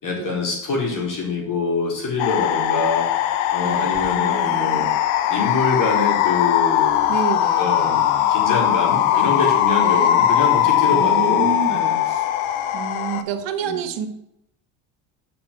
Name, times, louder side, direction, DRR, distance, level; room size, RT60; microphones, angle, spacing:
voice 1, 0.0-3.2 3.5-4.9 5.3-7.2 7.6-12.0 13.6-13.8, left 3 dB, 45° left, -1 dB, 4.6 m, -25 dB
sound 1, 2.2-13.2, left 11 dB, 80° left, 1.1 m, -20 dB
voice 2, 3.6-4.9 7.1-8.1 9.0-9.4 9.8-10.1 10.6-12.3 12.7-14.1, right 6 dB, 70° right, 8 dB, 1.5 m, -30 dB
7.9 x 6.2 x 7.8 m, 0.79 s
cardioid pair, 105°, 45 cm